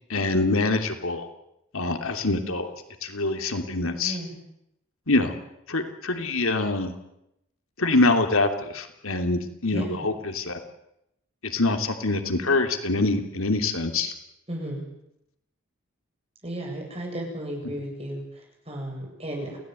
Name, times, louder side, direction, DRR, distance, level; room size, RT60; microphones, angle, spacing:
voice 1, 0.1-1.3 1.7-2.7 3.0-4.2 5.1-5.3 5.7-6.9 7.8-10.6 11.4-14.1 17.6-17.7, left 2 dB, 80° left, 6 dB, 3.1 m, -25 dB
voice 2, 4.0-4.3 9.7-10.0 14.5-14.8 16.4-19.6, right 1 dB, 30° right, 1 dB, 7.9 m, -34 dB
28.5 x 17.0 x 9.3 m, 0.82 s
head